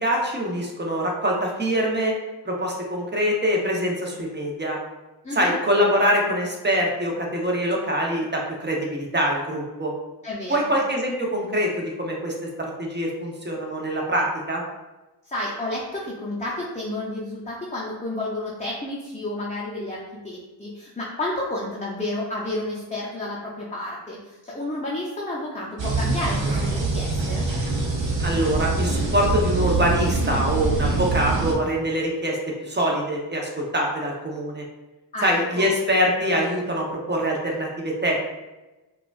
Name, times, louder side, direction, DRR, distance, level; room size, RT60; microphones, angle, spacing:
voice 1, 0.0-2.1 2.4-4.8 5.3-9.9 10.5-14.6 28.2-34.6 35.2-38.2, equal, 25° right, -1 dB, 0.8 m, -24 dB
voice 2, 5.2-5.6 10.2-10.7 15.2-27.5 35.1-35.7, left 1 dB, 15° left, -5 dB, 0.6 m, -31 dB
sound 1, 25.8-31.5, right 3 dB, 85° right, 0.7 m, -24 dB
4.7 x 2.3 x 2.4 m, 1.1 s
wide cardioid pair, 60°, 44 cm